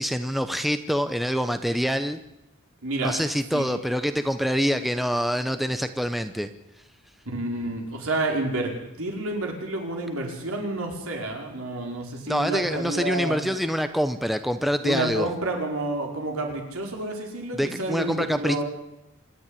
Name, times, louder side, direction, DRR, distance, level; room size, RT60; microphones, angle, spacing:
voice 1, 0.0-2.2 3.0-6.5 12.3-15.3 17.5-18.6, equal, ahead, 9 dB, 0.7 m, -25 dB
voice 2, 2.8-3.1 3.5-3.7 7.2-13.5 14.8-18.6, right 2 dB, 70° right, 1 dB, 5.1 m, -29 dB
26.5 x 10.5 x 9.9 m, 0.90 s
head